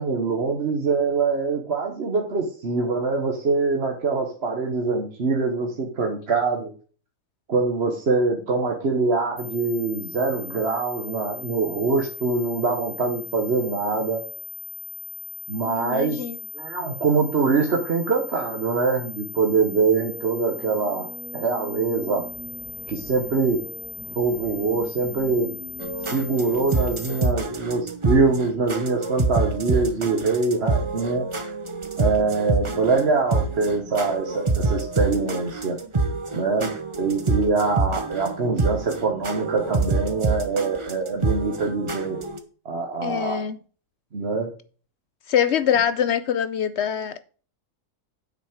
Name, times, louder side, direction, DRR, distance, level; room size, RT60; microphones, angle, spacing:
voice 1, 0.0-6.7 7.5-14.2 15.5-16.2 16.5-21.1 21.3-22.2 22.9-23.6 24.1-25.5 26.1-31.2 32.0-35.8 36.3-42.2 42.6-43.4 44.1-44.5, right 4 dB, 45° right, 1.3 m, -24 dB
sound 1, 9.4-27.3, left 7 dB, 30° left, 1.7 m, -38 dB
voice 2, 15.7-16.4 43.0-43.6 45.3-47.2, left 9 dB, 70° left, 0.6 m, -24 dB
sound 2, 20.0-26.4, right 3 dB, 85° right, 1.8 m, -42 dB
sound 3, 25.8-42.4, right 3 dB, 25° right, 0.7 m, -27 dB
7.9 x 6.3 x 5.1 m
omnidirectional pair, 1.7 m